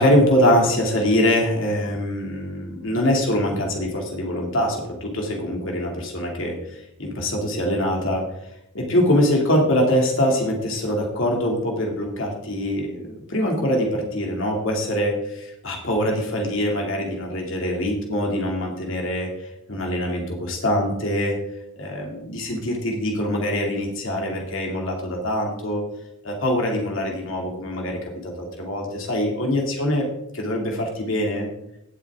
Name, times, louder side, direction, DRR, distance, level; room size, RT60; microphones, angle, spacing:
voice 1, 0.0-8.2 8.7-21.4 21.8-25.8 26.2-30.1 30.3-31.5, equal, 65° left, 0 dB, 2.5 m, -23 dB
17.5 x 8.2 x 3.6 m, 0.80 s
head